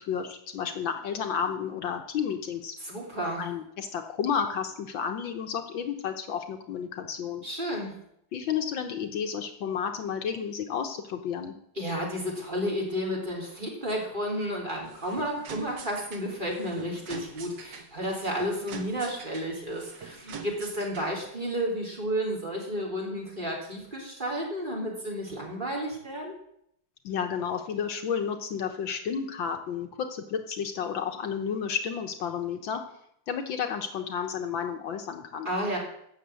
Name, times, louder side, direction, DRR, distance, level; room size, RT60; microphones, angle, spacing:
voice 1, 0.0-2.7 3.4-7.5 8.3-11.5 27.0-32.8 33.3-35.5, left 7 dB, 70° left, 6 dB, 1.7 m, -31 dB
voice 2, 2.8-3.4 7.4-7.9 11.8-26.3 35.5-35.8, equal, 25° right, -2 dB, 3.6 m, -32 dB
sound 1, 14.7-21.3, right 5 dB, 60° right, 1.9 m, -44 dB
15.0 x 6.6 x 7.6 m, 0.74 s
omnidirectional pair, 2.3 m